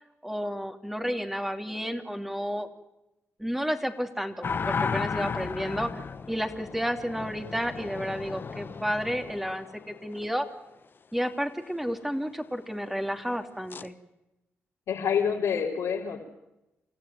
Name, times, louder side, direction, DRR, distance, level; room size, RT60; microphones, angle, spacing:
voice 1, 0.2-2.7 3.4-5.9 6.3-10.5 11.1-13.9, equal, 5° right, 5 dB, 3.0 m, -31 dB
sound 1, 4.4-10.2 13.7-13.9, left 5 dB, 45° left, 1.1 m, -34 dB
voice 2, 14.9-16.2, left 7 dB, 80° left, -6 dB, 3.9 m, -27 dB
28.5 x 14.5 x 9.5 m, 0.93 s
cardioid pair, 60°, 5 cm